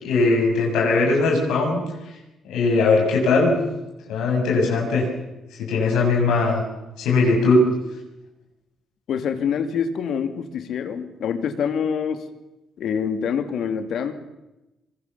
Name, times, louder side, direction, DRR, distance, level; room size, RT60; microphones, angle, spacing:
voice 1, 0.0-1.8 2.4-3.6 4.1-5.1 5.6-6.6 7.0-7.7, left 3 dB, 90° left, -1 dB, 7.7 m, -19 dB
voice 2, 9.1-12.2 12.8-14.1, left 7 dB, 70° left, 8 dB, 2.6 m, -26 dB
23.0 x 23.0 x 7.1 m, 0.98 s
cardioid pair, 90°, 0 cm